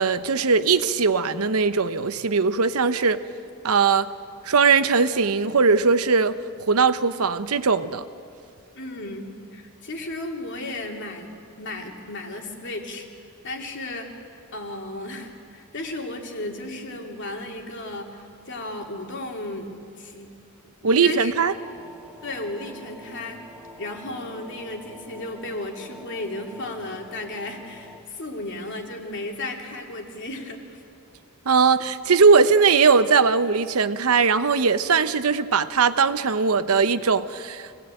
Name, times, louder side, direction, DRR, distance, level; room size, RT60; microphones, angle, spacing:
voice 1, 0.0-3.2 3.6-4.1 4.4-6.4 6.7-8.1 20.8-21.5 31.5-37.8, right 5 dB, 85° right, 12 dB, 0.9 m, -20 dB
voice 2, 8.7-11.3 11.6-13.1 13.4-14.1 14.5-19.7 19.9-20.3 20.8-21.3 22.2-23.4 23.8-30.8, left 2 dB, 55° left, 2 dB, 2.9 m, -34 dB
sound 1, 21.4-28.0, equal, 5° right, 2.1 m, -46 dB
25.0 x 17.5 x 9.0 m, 2.5 s
head